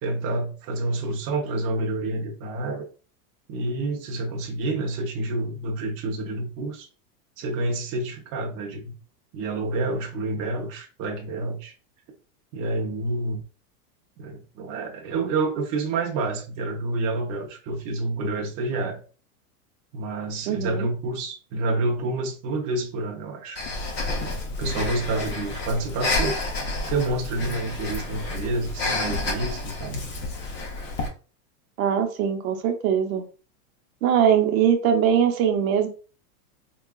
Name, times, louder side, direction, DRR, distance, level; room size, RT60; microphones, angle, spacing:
voice 1, 0.0-2.9 3.5-6.9 7.4-8.9 9.3-11.7 12.5-13.4 14.2-19.0 19.9-23.6 24.6-26.4 26.9-30.0, right 2 dB, 30° right, 0 dB, 0.6 m, -28 dB
voice 2, 20.5-20.9 31.8-33.2 34.0-35.9, right 8 dB, 60° right, 5 dB, 0.8 m, -21 dB
Breathing, 23.6-31.1, left 2 dB, 25° left, 0.6 m, -30 dB
4.6 x 2.3 x 2.3 m, 0.36 s
supercardioid pair, 140°, 46 cm